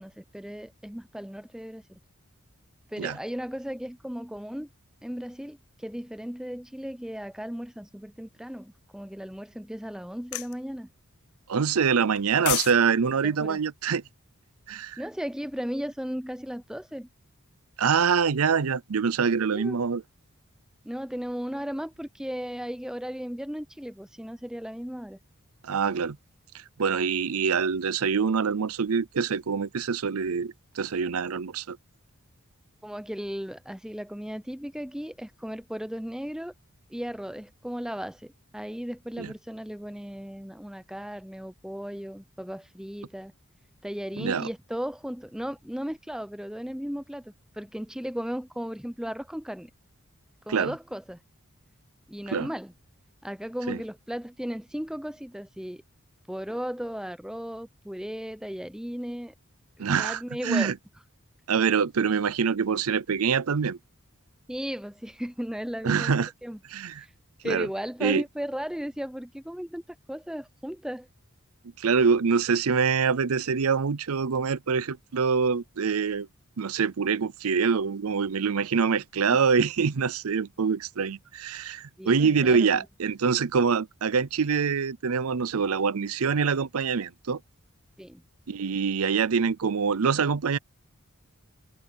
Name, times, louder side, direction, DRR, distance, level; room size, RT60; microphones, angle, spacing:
voice 1, 0.0-2.0 2.9-4.7 5.0-10.9 13.2-13.6 15.0-17.1 19.5-19.8 20.8-25.2 32.8-36.5 36.9-43.3 43.8-49.7 50.5-51.2 52.1-52.7 53.2-55.8 56.3-59.3 60.0-60.7 64.5-66.1 66.4-66.6 67.0-67.1 67.4-69.8 70.1-71.1 79.3-79.4 82.0-82.9 88.0-88.2, equal, 5° right, 0.6 m, -36 dB
sound 1, 10.3-10.5 12.2-12.8 13.1-13.3, left 18 dB, 75° left, 0.3 m, -29 dB
voice 2, 11.5-14.0 14.7-15.0 17.8-20.0 25.6-26.2 26.8-31.8 39.2-39.3 44.2-44.5 50.5-50.7 52.3-52.5 53.7-53.8 59.8-60.7 61.5-63.8 65.8-66.3 66.7-67.0 67.4-67.7 68.0-68.2 71.8-76.3 76.6-87.4 88.5-90.6, right 6 dB, 80° right, 0.6 m, -25 dB
head